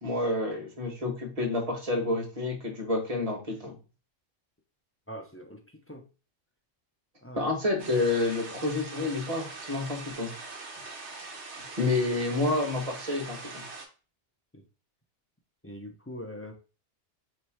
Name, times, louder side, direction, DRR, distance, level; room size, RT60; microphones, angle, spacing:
voice 1, 0.0-3.8 7.4-10.3 11.8-13.7, left 2 dB, 35° right, 1.3 m, -29 dB
voice 2, 5.1-6.0 7.2-7.5 14.5-14.6 15.6-16.5, equal, 20° left, 0.4 m, -42 dB
sound 1, 7.8-13.9, right 3 dB, 80° right, 1.3 m, -42 dB
3.2 x 3.0 x 4.6 m
omnidirectional pair, 1.2 m